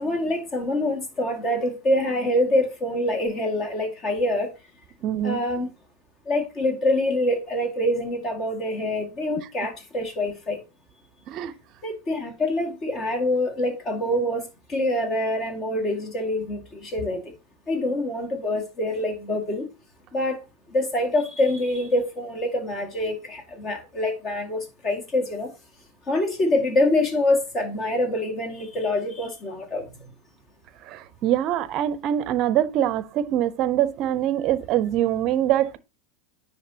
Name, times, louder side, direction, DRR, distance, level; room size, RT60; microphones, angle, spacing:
voice 1, 0.0-4.5 5.2-5.7 6.3-10.6 11.8-17.2 17.7-19.7 20.1-20.4 20.7-25.5 26.1-29.9, left 1 dB, 35° left, 1.8 m, -25 dB
voice 2, 5.0-5.4 11.3-11.5 30.9-35.8, right 11 dB, 45° right, 0.6 m, -24 dB
10.0 x 3.4 x 2.8 m
hypercardioid pair, 95°, 0 cm